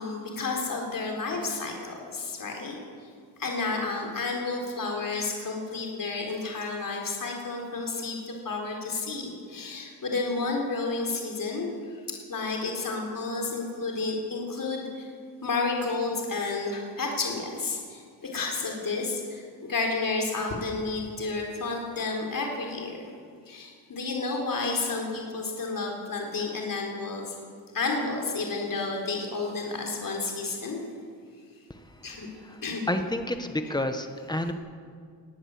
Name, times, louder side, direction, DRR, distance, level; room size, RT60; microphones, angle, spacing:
voice 1, 0.0-3.1 3.4-11.7 12.1-15.1 15.4-23.1 23.5-27.4 27.7-30.8 32.0-32.3 32.6-32.8, left 3 dB, 50° left, 0 dB, 4.0 m, -31 dB
voice 2, 32.9-34.5, left 1 dB, 10° left, 7 dB, 1.5 m, -29 dB
20.5 x 18.0 x 7.9 m, 2.1 s
wide cardioid pair, 150°, 42 cm